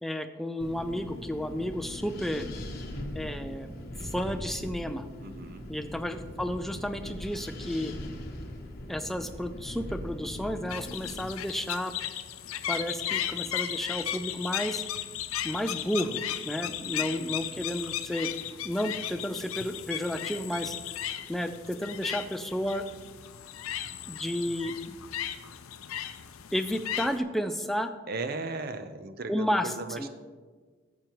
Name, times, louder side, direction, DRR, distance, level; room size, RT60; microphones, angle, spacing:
voice 1, 0.0-2.5 3.1-3.7 4.0-5.1 5.7-7.9 8.9-11.9 12.7-14.8 15.4-18.3 18.6-20.8 21.3-22.8 24.1-24.9 26.5-27.9 29.3-30.1, equal, ahead, 8 dB, 0.3 m, -32 dB
Wind, 0.6-11.3, left 1 dB, 45° left, 1.0 m, -40 dB
voice 2, 5.2-5.7 16.6-17.2 28.1-30.1, right 3 dB, 45° right, 9 dB, 0.6 m, -37 dB
sound 1, 10.7-27.2, left 11 dB, 90° left, 0.5 m, -36 dB
11.5 x 7.5 x 3.0 m, 1.5 s
head